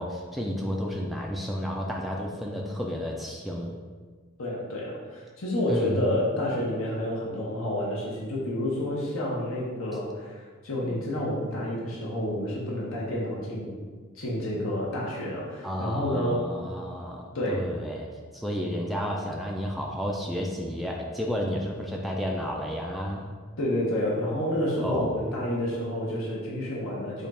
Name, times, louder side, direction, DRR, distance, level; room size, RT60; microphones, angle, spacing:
voice 1, 0.0-3.8 5.7-6.1 15.6-23.3 24.8-25.2, equal, ahead, -1 dB, 0.3 m, -32 dB
voice 2, 4.4-13.7 14.1-16.5 17.3-17.6 23.6-27.3, left 1 dB, 70° left, -5 dB, 1.0 m, -29 dB
5.2 x 2.3 x 4.2 m, 1.5 s
head